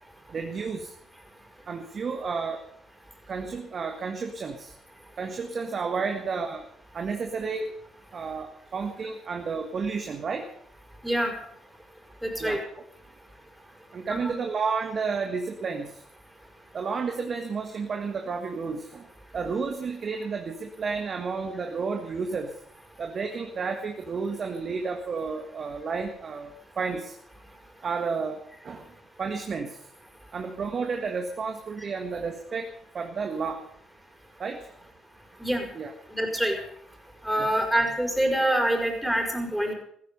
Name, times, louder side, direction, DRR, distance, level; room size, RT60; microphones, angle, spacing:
voice 1, 0.3-0.9 1.7-2.6 3.3-4.7 5.2-6.6 6.9-7.7 8.1-10.5 12.4-12.6 13.9-16.0 16.7-19.1 19.3-22.6 23.0-27.1 27.8-28.9 29.2-29.8 30.3-33.6 34.4-34.7 35.7-35.9 37.4-37.5, right 5 dB, 50° right, 4 dB, 1.8 m, -31 dB
voice 2, 12.2-12.6 14.1-14.3 35.4-35.6 36.1-36.6 37.2-39.7, right 1 dB, 5° right, 2 dB, 5.3 m, -25 dB
15.5 x 14.5 x 5.5 m, 0.65 s
hypercardioid pair, 50°, 0 cm